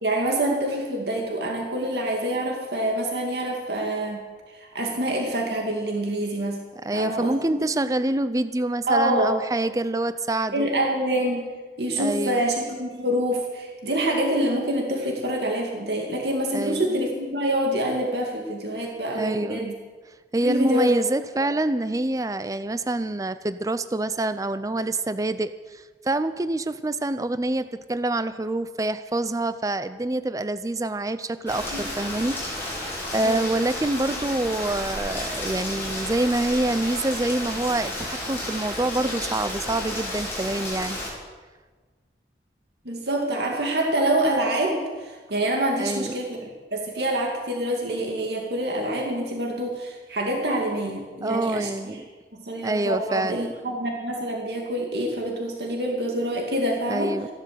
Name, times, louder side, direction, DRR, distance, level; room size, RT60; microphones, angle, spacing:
voice 1, 0.0-4.2 4.5-6.6 6.9-7.6 8.9-9.3 10.5-11.4 11.8-19.7 20.4-20.9 31.7-31.8 33.2-33.5 42.8-51.7 52.3-57.1, right 1 dB, 70° right, 1 dB, 2.2 m, -26 dB
voice 2, 6.8-10.7 12.0-12.4 16.5-16.8 19.1-19.7 20.3-32.8 33.1-41.0 45.8-46.1 51.2-52.0 52.6-53.4 56.9-57.3, right 2 dB, 20° right, 12 dB, 0.4 m, -26 dB
Rain, 31.5-41.1, left 1 dB, 15° left, 5.1 m, -32 dB
15.0 x 11.5 x 7.5 m, 1.4 s
head